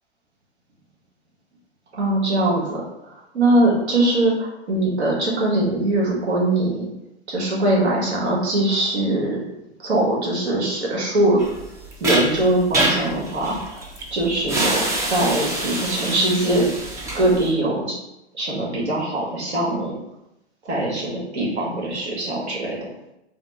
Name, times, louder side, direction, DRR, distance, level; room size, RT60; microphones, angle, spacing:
voice 1, 1.9-2.8 3.3-6.9 7.3-9.5 9.8-11.4 12.0-13.8 14.1-16.7 17.1-18.0 18.3-20.0 20.6-22.9, right 1 dB, 75° right, -3 dB, 1.5 m, -22 dB
sound 1, 11.4-17.5, right 1 dB, 10° right, 0.3 m, -25 dB
4.2 x 2.1 x 4.0 m, 0.88 s
hypercardioid pair, 110°, 33 cm